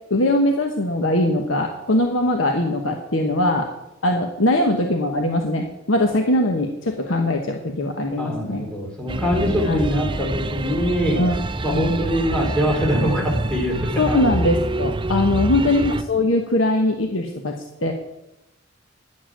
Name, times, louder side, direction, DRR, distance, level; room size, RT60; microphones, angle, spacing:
voice 1, 0.1-3.7 4.0-8.7 9.7-9.8 11.2-11.4 11.7-11.9 14.0-17.9, left 1 dB, 80° left, 3 dB, 1.2 m, -21 dB
voice 2, 8.2-11.2 11.6-14.2 15.3-15.6, equal, 5° left, -2 dB, 3.6 m, -23 dB
sound 1, 9.1-16.0, right 2 dB, 25° right, 0.5 m, -27 dB
11.0 x 7.5 x 7.5 m, 0.89 s
head